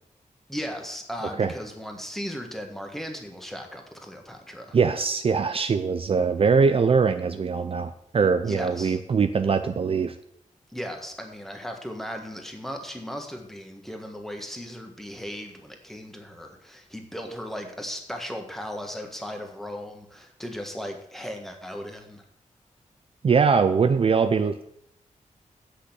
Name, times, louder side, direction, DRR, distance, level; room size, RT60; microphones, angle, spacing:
voice 1, 0.5-4.8 8.4-9.0 10.7-22.2, equal, ahead, 3 dB, 1.6 m, -37 dB
voice 2, 4.7-10.1 23.2-24.6, right 5 dB, 45° right, 10 dB, 0.5 m, -22 dB
7.9 x 6.6 x 8.0 m, 0.74 s
wide cardioid pair, 150°, 13 cm